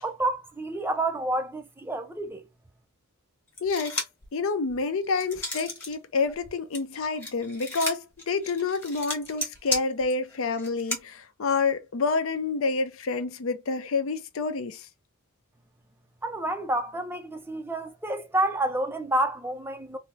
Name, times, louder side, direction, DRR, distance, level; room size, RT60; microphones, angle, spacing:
voice 1, 0.0-2.4 16.2-20.0, right 1 dB, 10° right, 0.4 m, -29 dB
voice 2, 3.6-4.0 4.3-14.9, left 4 dB, 60° left, 0.5 m, -28 dB
sound 1, 3.6-4.3 4.7-5.9 6.3-11.0, left 2 dB, 10° left, 1.2 m, -34 dB
2.9 x 2.0 x 3.5 m
head